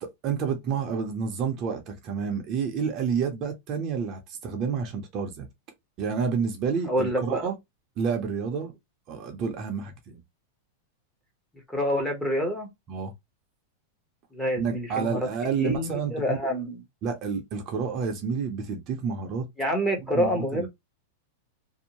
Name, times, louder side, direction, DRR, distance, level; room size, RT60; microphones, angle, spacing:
voice 1, 0.0-5.5 6.0-7.5 8.0-8.7 9.1-10.2 12.9-13.1 14.6-16.4 17.0-19.5 20.1-20.7, right 6 dB, 30° right, 0.6 m, -29 dB
voice 2, 6.9-7.4 11.7-12.7 14.3-15.2 15.6-16.8 19.6-20.7, equal, 5° left, 0.7 m, -27 dB
2.6 x 2.0 x 2.9 m
supercardioid pair, 160°, 0 cm